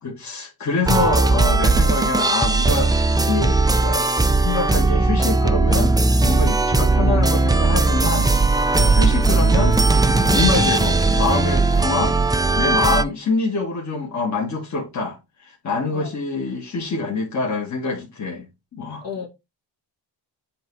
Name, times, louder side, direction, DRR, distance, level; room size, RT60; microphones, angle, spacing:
voice 1, 0.0-2.9 3.3-5.9 6.2-8.3 8.9-9.8 10.3-12.1 12.6-19.0, left 4 dB, 40° left, 1.7 m, -25 dB
sound 1, 0.8-13.0, right 3 dB, 10° right, 0.4 m, -18 dB
voice 2, 8.8-9.2 11.5-11.6 12.8-13.0 15.9-16.1 19.0-19.3, left 5 dB, 55° left, 2.3 m, -33 dB
7.7 x 2.9 x 4.6 m
cardioid pair, 130°, 43 cm